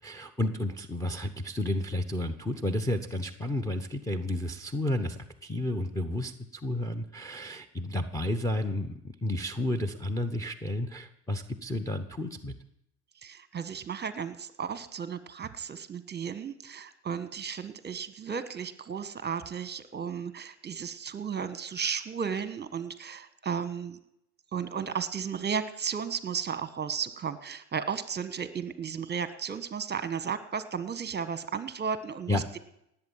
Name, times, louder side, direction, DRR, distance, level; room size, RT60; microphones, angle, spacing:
voice 1, 0.0-12.5 32.3-32.6, left 1 dB, 5° left, 8 dB, 1.0 m, -31 dB
voice 2, 13.2-24.0 24.5-32.6, right 7 dB, 20° right, 12 dB, 1.4 m, -34 dB
18.5 x 8.3 x 7.3 m, 0.77 s
hypercardioid pair, 95°, 48 cm